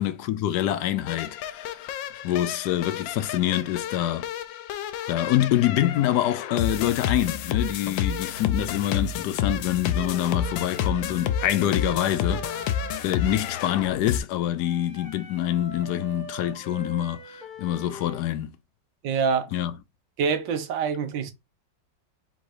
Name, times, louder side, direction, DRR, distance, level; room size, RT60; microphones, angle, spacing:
voice 1, 0.0-1.9 2.2-4.3 5.1-12.7 13.0-18.6 19.5-19.7, left 12 dB, 70° left, 1.1 m, -26 dB
sound 1, 1.1-14.2, left 8 dB, 85° left, 1.4 m, -30 dB
Wind instrument woodwind instrument, 9.9-13.7 14.6-18.2, left 2 dB, 45° left, 0.6 m, -41 dB
voice 2, 19.0-19.5 20.2-21.3, right 6 dB, 75° right, 1.5 m, -25 dB
3.9 x 2.7 x 4.7 m
omnidirectional pair, 2.0 m